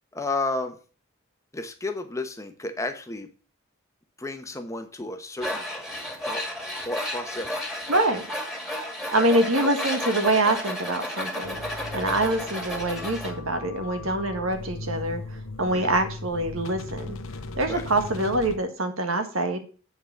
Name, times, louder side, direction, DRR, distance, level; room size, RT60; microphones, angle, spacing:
voice 1, 0.1-0.8 1.5-3.3 4.2-5.6 6.2-6.5 6.8-7.6 9.2-9.3 9.6-9.7 15.7-15.9 17.7-17.8, left 2 dB, 15° left, 7 dB, 0.9 m, -32 dB
Tools, 5.4-13.3, left 1 dB, ahead, 2.2 m, -32 dB
voice 2, 7.9-8.2 9.1-11.6 11.9-15.2 15.6-17.2 17.5-19.6, right 1 dB, 75° right, 7 dB, 1.7 m, -25 dB
sound 1, 11.4-18.6, left 2 dB, 75° left, 0.8 m, -38 dB
8.8 x 4.9 x 7.0 m, 0.37 s
head